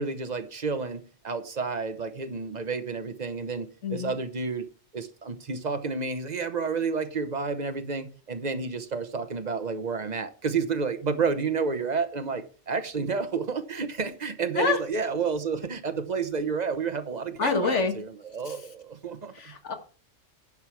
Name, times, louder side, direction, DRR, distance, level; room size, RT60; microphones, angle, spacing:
voice 1, 0.0-4.7 4.9-19.5, right 5 dB, 40° right, 1.0 m, -30 dB
voice 2, 3.8-4.1 14.6-14.8 17.4-18.0 18.5-18.6 19.4-19.7, left 4 dB, 90° left, 1.9 m, -26 dB
10.5 x 6.3 x 4.6 m
omnidirectional pair, 1.2 m